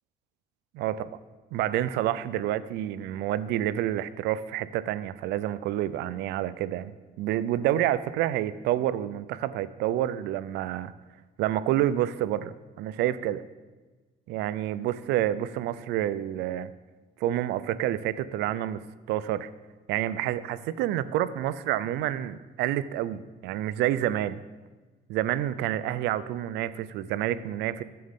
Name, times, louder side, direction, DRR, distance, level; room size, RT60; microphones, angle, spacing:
voice 1, 0.8-1.1 1.5-10.9 11.4-13.4 14.3-16.7 17.2-18.8 19.1-19.5 19.9-24.4 25.1-27.8, right 12 dB, 85° right, 16 dB, 0.5 m, -28 dB
14.0 x 7.7 x 3.6 m, 1.3 s
cardioid pair, 110°, 17 cm